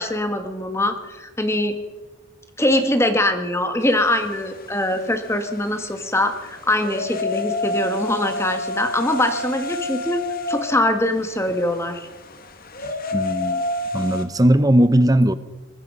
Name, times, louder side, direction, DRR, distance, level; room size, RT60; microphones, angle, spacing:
voice 1, 0.0-1.8 2.6-10.2 10.5-12.1, left 1 dB, 10° left, 1.5 m, -22 dB
sound 1, 3.8-14.2, left 2 dB, 45° left, 1.8 m, -30 dB
voice 2, 13.1-13.6 13.9-15.3, right 1 dB, 15° right, 0.9 m, -17 dB
23.5 x 20.5 x 5.5 m
head